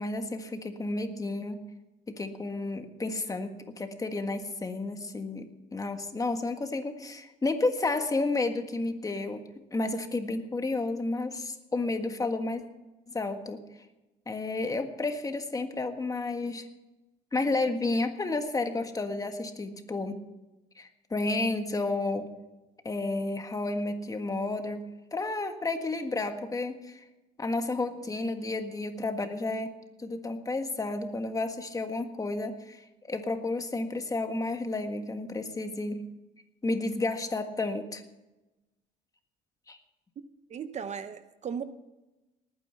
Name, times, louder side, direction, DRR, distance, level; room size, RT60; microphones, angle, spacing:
voice 1, 0.0-1.6 2.1-3.5 3.8-5.5 5.7-9.4 9.7-12.6 13.1-13.6 14.3-16.7 17.3-20.2 20.8-22.3 22.8-27.0 27.4-29.7 30.0-36.0 36.6-38.0 39.7-39.8, left 2 dB, 20° left, 7 dB, 1.6 m, -31 dB
voice 2, 40.5-41.6, right 7 dB, 45° right, 11 dB, 0.8 m, -36 dB
19.5 x 9.4 x 5.7 m, 1.0 s
cardioid pair, 110°, 17 cm